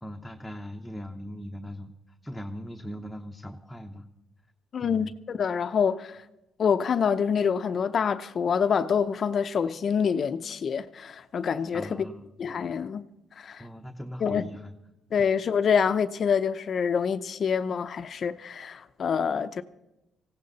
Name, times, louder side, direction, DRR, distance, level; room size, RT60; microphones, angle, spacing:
voice 1, 0.0-4.0 4.8-5.1 11.7-12.3 13.6-14.7 15.2-15.3, equal, 5° left, 1.1 m, -40 dB
voice 2, 4.7-6.2 6.6-12.0 12.4-13.0 13.4-13.6 14.2-14.5 15.1-19.6, left 6 dB, 50° left, 0.7 m, -26 dB
18.5 x 16.5 x 4.1 m
cardioid pair, 90°, 0 cm